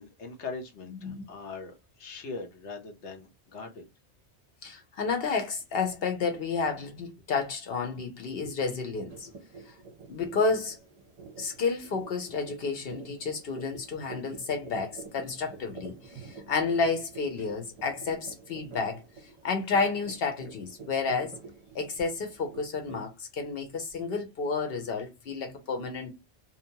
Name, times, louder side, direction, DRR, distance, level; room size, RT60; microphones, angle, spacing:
voice 1, 0.0-3.8, left 4 dB, 85° left, 1.1 m, -41 dB
voice 2, 4.6-9.3 9.7-9.8 10.1-10.8 11.4-19.0 19.4-21.4 21.7-26.1, left 4 dB, 60° left, 1.0 m, -31 dB
sound 1, 9.1-23.1, right 4 dB, 40° right, 0.7 m, -48 dB
2.8 x 2.0 x 2.7 m
omnidirectional pair, 1.1 m